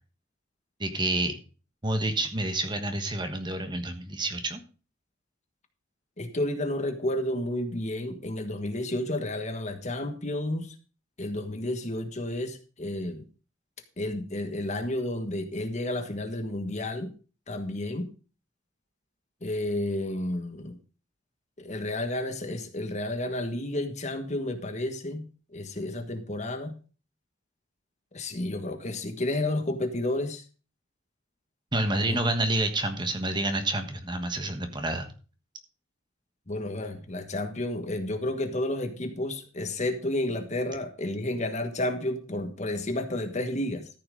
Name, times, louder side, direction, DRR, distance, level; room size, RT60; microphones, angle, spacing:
voice 1, 0.8-1.3 1.8-4.6 31.7-35.1, right 2 dB, 20° right, 7 dB, 1.3 m, -28 dB
voice 2, 6.2-10.8 11.2-13.2 14.0-17.1 17.5-18.1 19.4-20.8 21.6-26.8 28.1-30.4 32.1-32.2 36.5-43.9, left 1 dB, 35° left, 7 dB, 1.4 m, -31 dB
14.0 x 5.9 x 5.1 m, 0.36 s
head